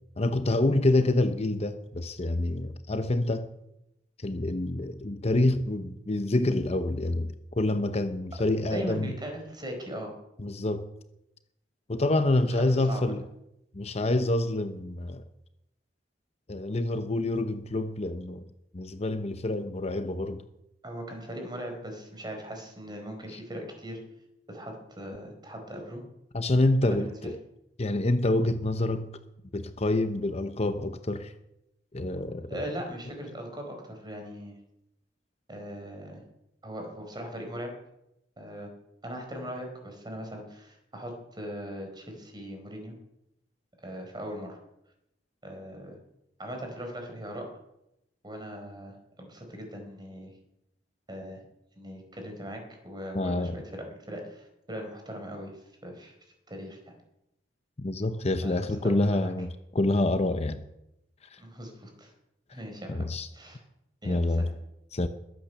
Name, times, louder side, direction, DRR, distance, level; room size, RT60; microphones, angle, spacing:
voice 1, 0.2-3.5 4.2-9.1 10.4-10.9 11.9-13.3 13.7-15.2 16.5-18.5 18.7-20.4 23.3-23.4 26.3-27.4 27.8-29.1 29.5-31.3 31.9-32.6 53.1-53.6 57.8-60.6 61.2-61.4 62.9-63.3 64.1-64.5 64.9-65.1, left 2 dB, 35° left, 0.8 m, -27 dB
voice 2, 8.7-10.1 12.6-13.0 20.8-24.0 24.5-26.0 26.8-27.3 32.5-34.6 35.5-36.2 36.6-37.7 38.4-38.7 39.0-42.9 43.8-44.6 45.4-46.0 46.4-47.5 48.2-50.3 51.1-51.4 51.8-55.5 55.8-56.1 56.5-56.9 58.4-59.3 61.4-62.1 62.5-63.1 63.3-63.6 64.0-64.2, equal, 25° right, 4.6 m, -39 dB
21.5 x 8.9 x 6.9 m
head